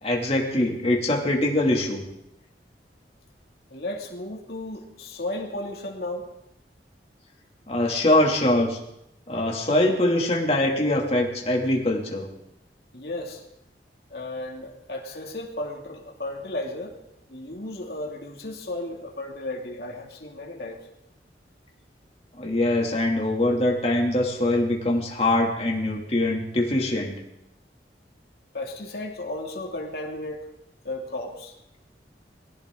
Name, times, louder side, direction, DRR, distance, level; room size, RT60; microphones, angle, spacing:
voice 1, 0.0-2.0 7.7-8.8 9.3-12.2 22.4-27.1, left 1 dB, 35° left, -1 dB, 2.8 m, -23 dB
voice 2, 3.7-6.3 12.9-13.4 14.1-17.0 17.3-20.9 28.5-30.5 30.8-31.5, left 2 dB, 60° left, 1 dB, 2.8 m, -34 dB
22.5 x 15.5 x 3.9 m, 0.84 s
head